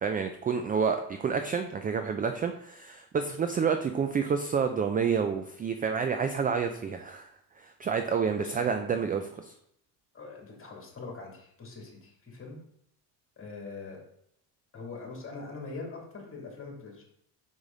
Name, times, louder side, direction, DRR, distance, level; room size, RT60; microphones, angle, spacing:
voice 1, 0.0-7.3 7.6-9.5, right 6 dB, 20° right, 7 dB, 0.4 m, -29 dB
voice 2, 10.1-12.6 13.4-14.0 14.7-17.0, left 3 dB, 25° left, 0 dB, 2.5 m, -42 dB
5.7 x 4.7 x 3.8 m, 0.73 s
supercardioid pair, 90°, 50 cm